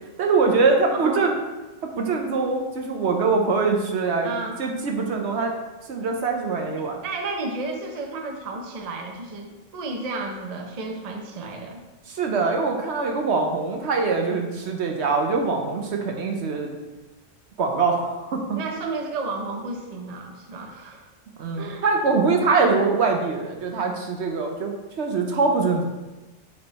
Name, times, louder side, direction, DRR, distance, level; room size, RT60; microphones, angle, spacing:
voice 1, 0.2-1.3 1.8-4.3 4.6-5.5 5.9-7.0 12.1-16.8 17.6-18.6 21.4-25.8, right 4 dB, 65° right, 2 dB, 1.0 m, -23 dB
voice 2, 0.9-1.3 4.2-4.6 6.7-11.8 18.5-21.1 21.6-21.8, right 3 dB, 40° right, 2 dB, 0.6 m, -32 dB
6.8 x 3.4 x 4.1 m, 1.1 s
omnidirectional pair, 1.3 m